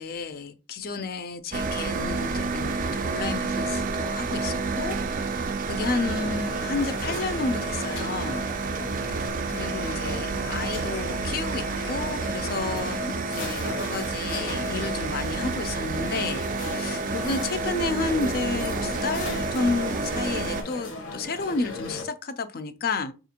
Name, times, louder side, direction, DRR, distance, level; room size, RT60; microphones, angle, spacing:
voice 1, 0.0-8.5 9.1-23.1, left 3 dB, 45° left, 0.4 m, -31 dB
sound 1, 1.5-20.6, right 4 dB, 40° right, 0.3 m, -29 dB
sound 2, 5.9-22.1, left 2 dB, 70° left, 0.9 m, -37 dB
4.3 x 2.4 x 2.8 m
head